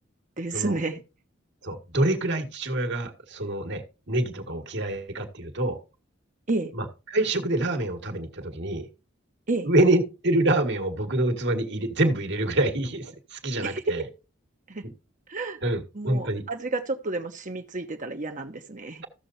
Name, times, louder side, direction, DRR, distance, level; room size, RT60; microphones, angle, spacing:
voice 1, 0.4-1.0 6.5-6.7 9.5-9.7 13.6-13.8 14.7-14.8 15.3-15.6 15.9-19.0, right 2 dB, 40° right, 1.1 m, -31 dB
voice 2, 1.6-5.8 6.7-8.9 9.6-14.0 14.8-14.9 15.6-16.4, right 1 dB, 60° right, 1.9 m, -26 dB
15.0 x 6.7 x 2.7 m
head